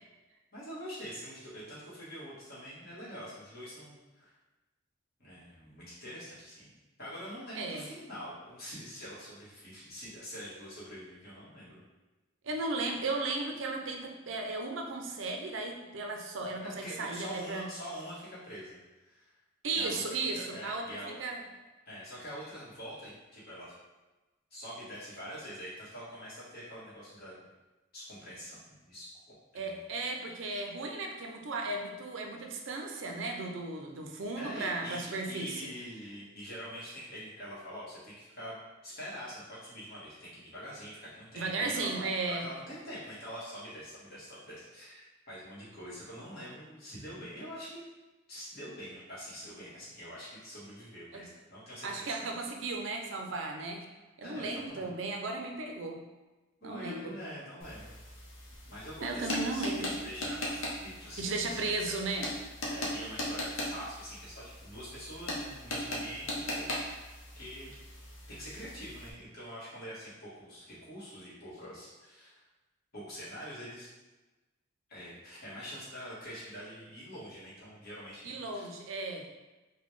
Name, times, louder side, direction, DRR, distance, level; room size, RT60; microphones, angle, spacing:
voice 1, 0.5-4.3 5.2-11.8 16.6-19.3 19.7-20.0 20.4-21.2 21.8-23.7 24.5-27.4 27.9-29.1 29.5-29.8 34.4-38.6 38.8-41.9 42.3-47.8 48.3-52.1 54.2-54.9 56.6-58.0 58.6-62.0 62.7-66.7 67.0-67.7 68.3-72.4 72.9-73.9 74.9-78.7, equal, 50° left, -8 dB, 1.3 m, -45 dB
voice 2, 7.5-7.9 12.4-17.7 19.6-21.4 29.5-35.6 41.3-42.4 51.1-51.2 51.8-53.9 54.2-56.0 56.6-57.2 59.0-59.9 61.2-62.3 78.2-79.3, right 3 dB, 65° right, 2 dB, 0.5 m, -35 dB
sound 1, 57.6-69.1, left 1 dB, 75° left, 0.8 m, -39 dB
4.0 x 2.2 x 3.1 m, 1.1 s
head